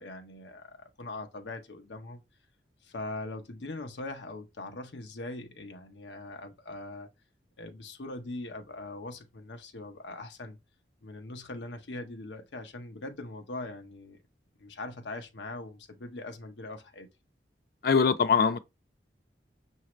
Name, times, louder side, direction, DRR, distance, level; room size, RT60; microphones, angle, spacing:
voice 1, 0.0-2.2 2.8-7.1 7.6-10.6 11.0-14.2 14.6-17.1, left 2 dB, 85° left, 0.8 m, -41 dB
voice 2, 17.8-18.6, left 5 dB, 55° left, 0.4 m, -22 dB
6.0 x 2.7 x 3.1 m
head